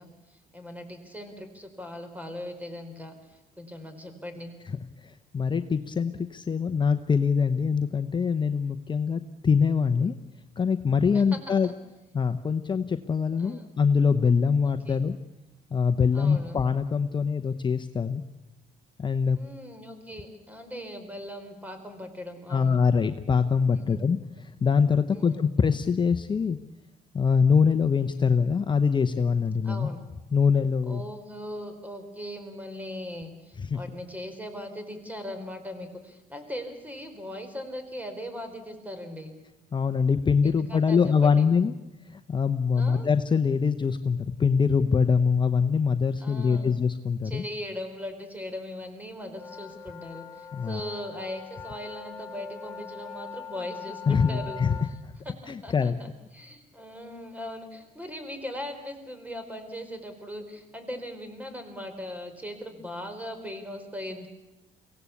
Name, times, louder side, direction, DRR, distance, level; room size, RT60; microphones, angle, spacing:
voice 1, 0.0-4.6 11.1-11.7 13.4-13.7 14.6-15.0 16.1-16.6 19.2-22.8 23.7-24.1 25.1-25.4 29.6-30.0 30.9-39.4 40.4-41.5 42.8-43.1 46.2-46.7 47.2-54.6 55.2-64.3, left 1 dB, 10° right, 8 dB, 4.4 m, -39 dB
voice 2, 5.0-10.1 10.6-11.7 12.1-15.1 15.7-18.2 19.0-19.4 22.5-26.6 27.1-29.9 30.3-31.0 33.6-33.8 39.7-41.7 42.1-47.4 50.5-50.8 54.1-54.7 55.0-55.1 55.5-55.9, left 6 dB, 30° left, 8 dB, 0.9 m, -24 dB
sound 1, 49.3-54.9, left 7 dB, 15° left, 3.4 m, -42 dB
23.5 x 17.0 x 8.5 m, 1.0 s
cardioid pair, 85°, 15 cm